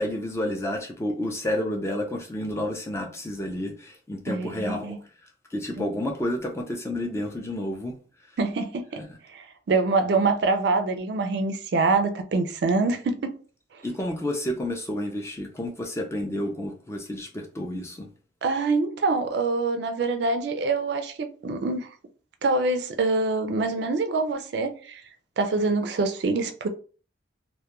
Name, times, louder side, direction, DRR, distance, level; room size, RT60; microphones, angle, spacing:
voice 1, 0.0-4.9 5.5-8.0 9.0-9.1 13.8-18.1, left 1 dB, 15° left, 0.3 m, -30 dB
voice 2, 4.3-5.0 5.8-5.9 8.4-8.9 9.3-13.3 18.4-21.9 22.4-25.0 25.4-26.7, right 3 dB, 60° right, 0.3 m, -25 dB
2.2 x 2.1 x 2.9 m
head